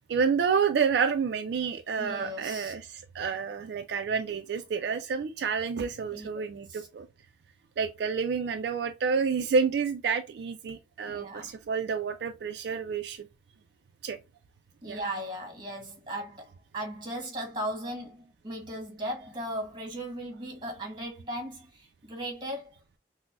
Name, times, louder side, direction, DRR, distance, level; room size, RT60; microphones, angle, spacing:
voice 1, 0.1-7.1 7.8-13.3 14.0-14.2 14.8-15.0, right 6 dB, 65° right, 0.3 m, -29 dB
voice 2, 2.0-2.7 6.1-6.3 6.7-6.9 11.1-11.5 14.8-22.7, right 1 dB, 25° right, 1.2 m, -37 dB
5.8 x 2.1 x 2.4 m
head